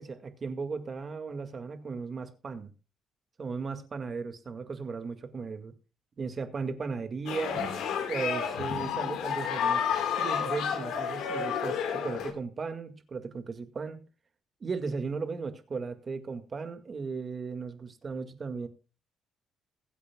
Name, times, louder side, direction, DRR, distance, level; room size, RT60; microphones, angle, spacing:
voice 1, 0.0-2.7 3.4-5.7 6.2-7.7 8.1-9.8 10.2-14.0 14.6-18.7, right 4 dB, 35° right, 1.9 m, -36 dB
sound 1, 7.3-12.3, left 7 dB, 80° left, 2.9 m, -30 dB
22.0 x 8.3 x 2.3 m
cardioid pair, 135°, 0 cm